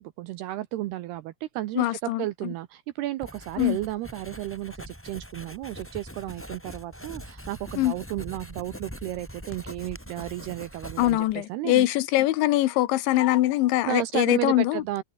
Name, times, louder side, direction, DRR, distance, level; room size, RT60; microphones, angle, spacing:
voice 1, 0.0-11.9 13.9-15.0, right 15 dB, 80° right, 2.4 m, -33 dB
voice 2, 1.8-2.2 3.6-3.8 7.8-7.9 11.0-14.8, left 16 dB, 75° left, 3.2 m, -23 dB
Writing, 3.2-11.4, equal, ahead, 6.8 m, -42 dB
omnidirectional pair, 5.7 m